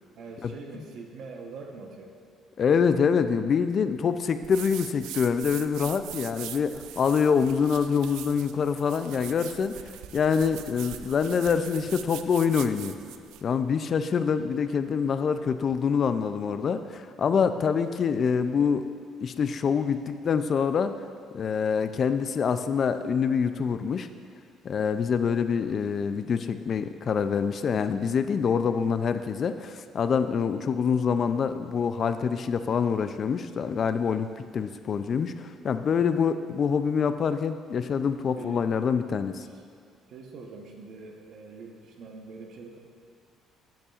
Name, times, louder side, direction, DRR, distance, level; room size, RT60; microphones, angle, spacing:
voice 1, 0.1-2.2 17.5-17.6 38.3-38.7 39.4-39.6 40.1-42.8, right 4 dB, 55° right, 2 dB, 1.0 m, -43 dB
voice 2, 2.6-9.7 10.1-13.0 13.4-18.9 19.2-20.9 21.3-24.1 24.6-39.5, left 6 dB, 40° left, 10 dB, 0.3 m, -25 dB
sound 1, 4.4-13.5, right 11 dB, 90° right, 0.3 m, -42 dB
10.0 x 9.5 x 2.4 m, 2.1 s
cardioid pair, 140°, 0 cm